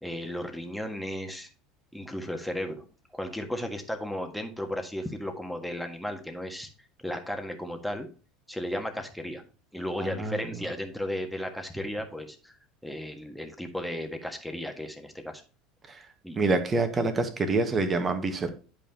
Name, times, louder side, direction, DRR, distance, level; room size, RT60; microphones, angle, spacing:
voice 1, 0.0-1.5 1.9-2.8 3.1-6.7 7.0-8.1 8.5-9.4 9.7-12.5 12.8-15.4 16.2-16.4, left 1 dB, ahead, 4 dB, 1.7 m, -34 dB
voice 2, 10.0-10.5 15.9-16.0 16.4-18.5, right 3 dB, 25° right, 7 dB, 1.6 m, -26 dB
11.0 x 5.1 x 2.9 m, 0.37 s
figure-of-eight pair, 70°, 0 cm